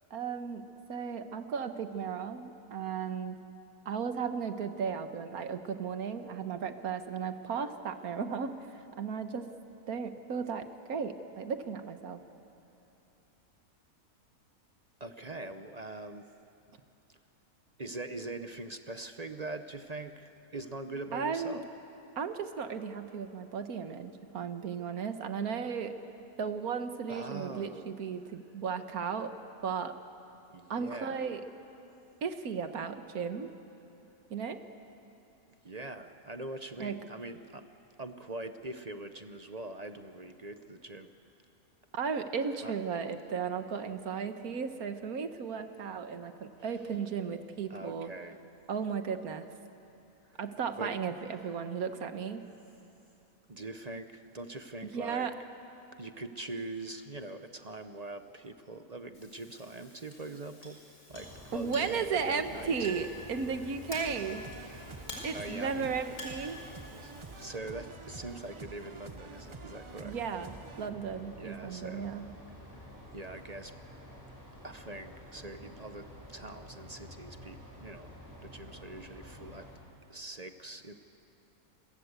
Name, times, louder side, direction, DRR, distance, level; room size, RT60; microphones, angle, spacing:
voice 1, 0.1-3.4 3.9-8.6 9.0-9.5 9.9-10.6 10.9-12.2 21.1-21.6 22.2-25.9 26.4-29.3 29.6-29.9 30.7-31.4 32.2-33.5 34.3-34.6 36.8-37.0 41.9-48.1 48.7-49.4 50.4-52.4 54.9-55.3 61.5-64.4 65.2-66.6 70.0-72.3, right 6 dB, 80° right, 8 dB, 1.7 m, -35 dB
voice 2, 15.0-16.3 17.8-21.7 27.1-28.2 30.5-31.3 35.6-37.7 38.0-41.1 42.6-42.7 47.7-48.4 50.8-51.0 51.3-51.5 53.5-55.3 56.0-60.8 61.1-62.9 64.6-65.9 66.6-66.7 67.0-70.2 71.4-72.1 73.1-73.7 74.6-78.1 78.4-79.7 80.1-81.0, right 2 dB, 35° right, 8 dB, 0.8 m, -43 dB
Chink clink, 59.1-67.5, equal, 75° left, 5.0 m, -48 dB
sound 1, 61.1-79.8, equal, 10° right, 6.2 m, -50 dB
sound 2, 64.0-70.9, right 5 dB, 50° right, 0.3 m, -50 dB
28.5 x 22.5 x 8.2 m, 2.9 s
omnidirectional pair, 1.5 m